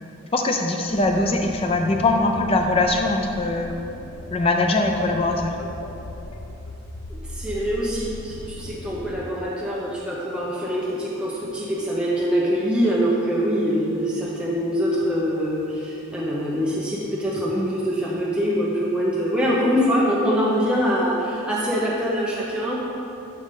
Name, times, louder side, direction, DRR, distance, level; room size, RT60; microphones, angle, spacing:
voice 1, 0.3-3.7 4.3-5.5 17.6-17.7, left 2 dB, 25° left, 3 dB, 0.4 m, -21 dB
sound 1, 0.9-9.2, left 2 dB, 80° left, 0.6 m, -38 dB
voice 2, 7.1-22.8, equal, 5° right, -6 dB, 0.7 m, -24 dB
11.5 x 3.9 x 3.7 m, 2.7 s
head